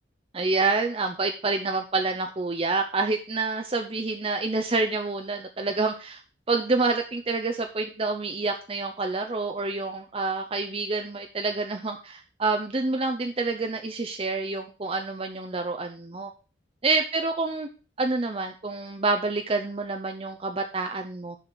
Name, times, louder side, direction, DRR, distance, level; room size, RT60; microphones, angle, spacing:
voice 1, 0.3-6.2 6.5-16.3 16.8-17.7 18.0-21.4, right 3 dB, 30° right, 4 dB, 0.6 m, -27 dB
6.7 x 5.6 x 6.3 m, 0.35 s
head